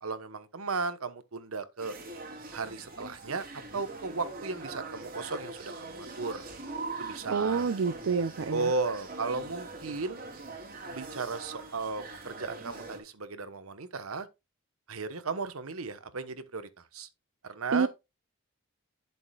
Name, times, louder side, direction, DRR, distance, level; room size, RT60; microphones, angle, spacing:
voice 1, 0.0-1.9 2.5-3.4 3.7-6.5 7.0-7.7 8.5-10.2 10.9-14.3 14.9-17.1 17.4-17.9, right 4 dB, 85° right, 1.1 m, -35 dB
sound 1, 1.8-13.0, right 3 dB, 45° right, 2.9 m, -42 dB
voice 2, 7.3-8.7 17.7-17.9, right 5 dB, 65° right, 0.4 m, -28 dB
11.0 x 7.1 x 2.3 m
head